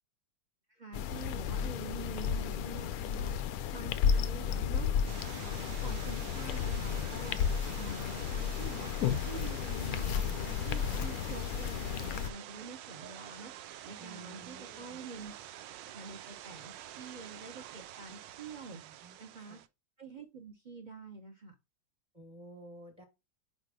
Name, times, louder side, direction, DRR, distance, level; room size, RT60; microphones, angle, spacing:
voice 1, 0.8-3.3 3.7-7.4 7.8-13.5 13.8-15.3 15.8-18.8 19.2-19.6 20.0-21.5, right 4 dB, 40° right, 0.7 m, -46 dB
sound 1, 0.9-12.3, left 8 dB, 75° left, 0.8 m, -33 dB
sound 2, 5.1-19.7, right 12 dB, 80° right, 1.2 m, -48 dB
voice 2, 14.0-15.0 18.8-19.6 22.1-23.0, right 2 dB, 20° right, 1.5 m, -53 dB
4.8 x 4.2 x 4.9 m
omnidirectional pair, 2.0 m